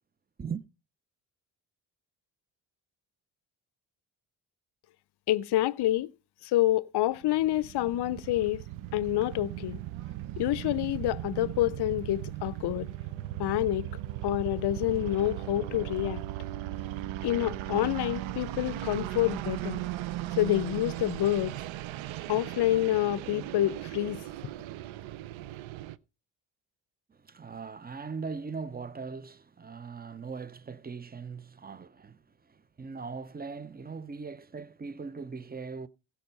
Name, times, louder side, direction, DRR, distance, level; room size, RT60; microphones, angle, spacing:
voice 1, 5.3-6.1 6.4-8.6 8.9-9.8 10.4-12.9 13.4-13.9 14.2-16.2 17.2-19.8 20.4-21.5 22.3-24.2, left 14 dB, 60° left, 0.6 m, -27 dB
sound 1, 7.2-26.0, right 14 dB, 80° right, 0.6 m, -37 dB
voice 2, 27.1-35.9, right 5 dB, 20° right, 0.7 m, -40 dB
16.0 x 5.8 x 5.4 m
supercardioid pair, 60°, 46 cm